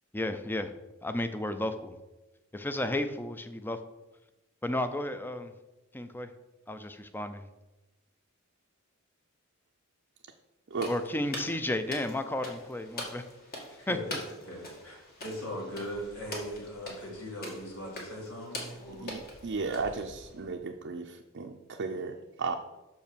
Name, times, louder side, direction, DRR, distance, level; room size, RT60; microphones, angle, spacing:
voice 1, 0.1-0.7 1.0-2.0 2.5-3.8 4.6-5.5 5.9-6.3 6.7-7.4 10.9-13.2 13.9-14.0, left 1 dB, 10° left, 9 dB, 0.5 m, -32 dB
sound 1, 10.7-20.5, left 1 dB, 45° left, 2.1 m, -44 dB
voice 2, 13.8-19.1, equal, 85° left, -2 dB, 3.0 m, -40 dB
voice 3, 19.0-22.6, right 4 dB, 55° right, 2 dB, 0.5 m, -35 dB
6.2 x 5.4 x 6.8 m, 1.0 s
head